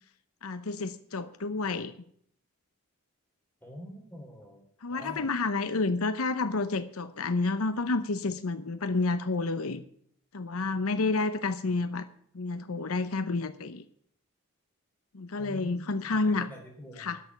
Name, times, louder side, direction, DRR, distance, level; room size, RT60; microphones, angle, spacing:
voice 1, 0.4-1.9 4.8-9.8 10.3-12.1 12.3-13.8 15.1-16.5 17.0-17.2, left 3 dB, 75° left, 12 dB, 0.8 m, -30 dB
voice 2, 3.6-4.6 4.9-5.3 15.4-17.1, equal, 10° left, 0 dB, 3.7 m, -45 dB
12.5 x 6.8 x 9.7 m, 0.64 s
head